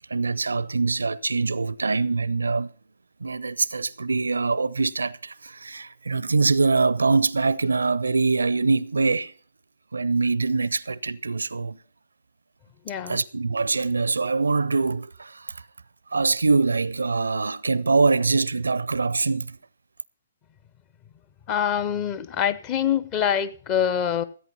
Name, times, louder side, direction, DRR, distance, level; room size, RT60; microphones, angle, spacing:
voice 1, 0.1-2.7 3.2-9.3 9.9-11.8 13.0-15.6 16.1-19.6, right 4 dB, 70° right, 0.5 m, -24 dB
voice 2, 12.8-13.2 21.5-24.2, left 9 dB, 25° left, 0.8 m, -25 dB
14.5 x 8.5 x 5.5 m
figure-of-eight pair, 125°, 0 cm